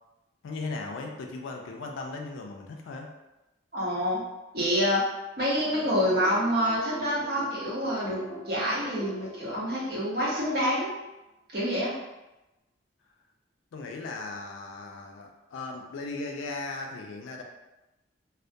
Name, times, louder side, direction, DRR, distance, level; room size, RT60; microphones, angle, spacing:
voice 1, 0.4-3.1 13.7-17.4, left 3 dB, 85° left, 1 dB, 0.3 m, -37 dB
voice 2, 3.7-4.2 4.5-5.0 5.4-8.2 8.5-10.9 11.5-11.9, equal, 50° right, -7 dB, 0.8 m, -27 dB
sound 1, 5.5-10.9, right 1 dB, 5° right, 0.5 m, -42 dB
2.2 x 2.1 x 2.6 m, 0.99 s
head